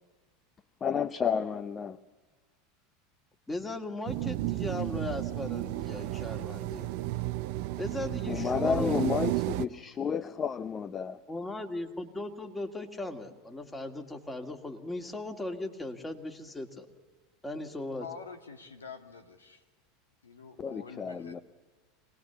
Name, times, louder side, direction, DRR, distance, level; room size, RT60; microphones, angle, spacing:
voice 1, 0.8-2.0 8.3-11.2 20.6-21.4, left 6 dB, 30° left, 0.7 m, -31 dB
voice 2, 3.5-6.9 7.8-9.1 11.3-16.9 17.4-18.1, left 2 dB, 15° left, 2.3 m, -37 dB
sound 1, 4.1-9.7, right 17 dB, 60° right, 0.7 m, -33 dB
voice 3, 18.0-19.6 20.2-21.4, left 5 dB, 85° left, 1.7 m, -46 dB
25.5 x 19.5 x 7.1 m
hypercardioid pair, 80°, 0 cm